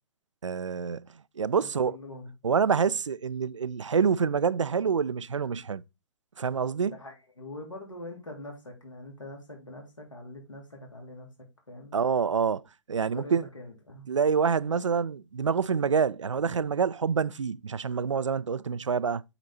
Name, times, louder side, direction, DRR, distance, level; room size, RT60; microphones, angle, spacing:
voice 1, 0.4-1.0 1.4-2.0 2.4-5.8 6.4-7.0 11.9-12.6 12.9-13.4 14.1-19.2, right 6 dB, 80° right, 0.4 m, -26 dB
voice 2, 1.5-2.3 6.8-11.3 11.7-12.0 13.1-14.1, left 1 dB, 85° left, 3.3 m, -43 dB
8.0 x 4.2 x 4.0 m
figure-of-eight pair, 120°, 16 cm